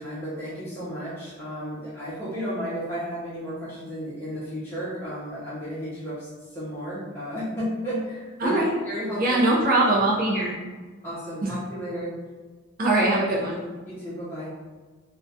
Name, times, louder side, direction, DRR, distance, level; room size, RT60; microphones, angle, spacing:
voice 1, 0.0-8.6 8.8-9.4 11.0-12.1 13.9-14.5, equal, 10° left, -11 dB, 0.5 m, -33 dB
voice 2, 8.4-8.7 9.2-10.5 11.4-11.6 12.8-13.6, right 2 dB, 40° right, -4 dB, 0.4 m, -22 dB
2.3 x 2.1 x 2.6 m, 1.3 s
head